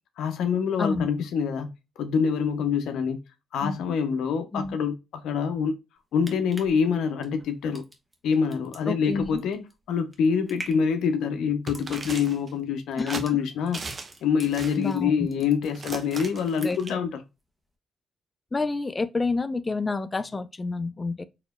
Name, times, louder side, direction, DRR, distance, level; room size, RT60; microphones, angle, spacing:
voice 1, 0.2-3.2 3.5-5.8 6.1-7.8 8.2-13.8 14.2-17.2, left 6 dB, 85° left, 0.7 m, -26 dB
sound 1, 6.0-15.0 15.3-16.0 16.3-17.0 17.4-17.5, right 1 dB, 15° right, 1.1 m, -46 dB
voice 2, 8.9-9.4 13.0-13.2 14.8-15.3 16.6-16.8 18.5-21.2, left 3 dB, 25° left, 0.5 m, -29 dB
sound 2, 11.7-12.5 13.1-13.3 13.7-14.1 14.4-14.9 15.6-16.9, right 3 dB, 45° right, 0.9 m, -37 dB
4.9 x 2.9 x 2.2 m
cardioid pair, 80°, 0 cm